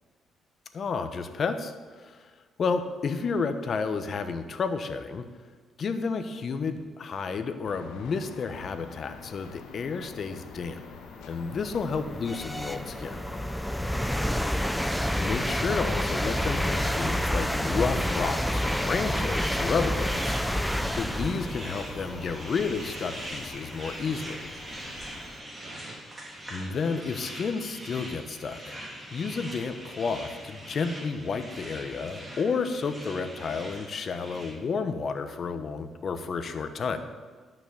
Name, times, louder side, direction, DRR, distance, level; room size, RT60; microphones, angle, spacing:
voice 1, 0.7-2.3 2.6-5.2 5.8-10.8 11.3-13.3 15.2-20.4 20.9-24.5 26.5-28.8 29.1-37.0, left 5 dB, 50° left, 9 dB, 1.0 m, -31 dB
sound 1, 7.6-25.2, left 7 dB, 80° left, 0.8 m, -46 dB
sound 2, 9.9-10.0 10.6-25.3, equal, 5° left, 0.6 m, -30 dB
sound 3, 14.6-34.5, right 1 dB, 15° right, 3.1 m, -42 dB
voice 2, 24.9-26.0, right 4 dB, 75° right, 2 dB, 1.6 m, -51 dB
11.5 x 6.0 x 6.7 m, 1.5 s
cardioid pair, 90°, 0 cm